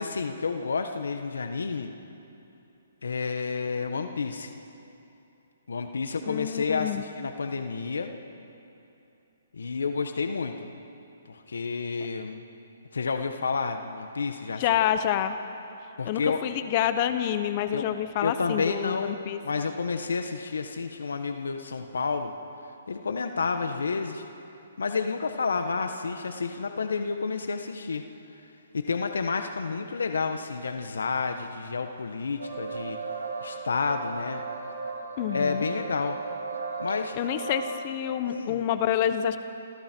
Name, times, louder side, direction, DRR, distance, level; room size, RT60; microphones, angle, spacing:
voice 1, 0.0-1.9 3.0-4.5 5.7-8.2 9.5-10.7 11.3-12.4 12.9-14.6 16.0-16.4 17.7-17.9 18.2-22.3 22.9-24.3 24.8-28.0 28.7-33.0 33.4-34.4 35.3-36.2 36.8-37.2 38.3-38.6, left 4 dB, 85° left, 7 dB, 1.4 m, -30 dB
voice 2, 6.3-7.0 14.6-15.3 16.0-19.4 35.2-35.7 37.1-39.4, left 10 dB, 35° left, 10 dB, 1.1 m, -27 dB
sound 1, 32.4-37.7, right 4 dB, 90° right, 5.6 m, -36 dB
28.0 x 26.5 x 4.6 m, 2.9 s
hypercardioid pair, 145°, 0 cm